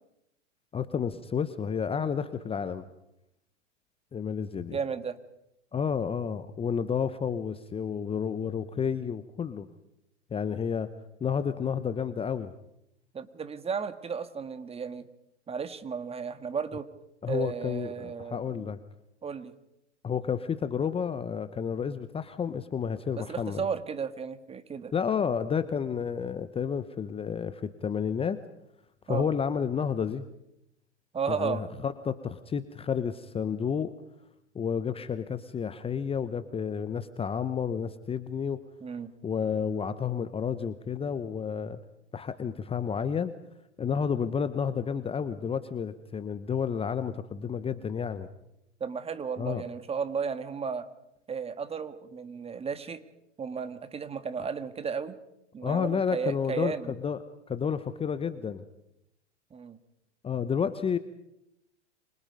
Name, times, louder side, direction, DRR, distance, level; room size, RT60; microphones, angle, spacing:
voice 1, 0.7-2.8 4.1-4.8 5.7-9.7 10.3-10.9 11.2-12.5 17.2-18.8 20.0-23.6 24.9-28.4 29.1-30.2 31.3-33.9 34.5-38.6 39.2-41.8 42.1-43.3 43.8-48.3 49.4-49.6 55.6-57.2 57.5-58.6 60.2-61.0, left 7 dB, 15° left, 12 dB, 1.1 m, -31 dB
voice 2, 4.7-5.2 13.1-15.1 15.5-16.9 17.3-18.7 19.2-19.5 23.2-24.9 29.1-29.3 31.1-31.6 38.8-39.1 48.8-50.9 51.3-53.0 53.4-55.2 55.5-56.9 59.5-59.8, right 6 dB, 15° right, 11 dB, 1.8 m, -34 dB
29.0 x 26.0 x 5.4 m, 0.83 s
hypercardioid pair, 100°, 35 cm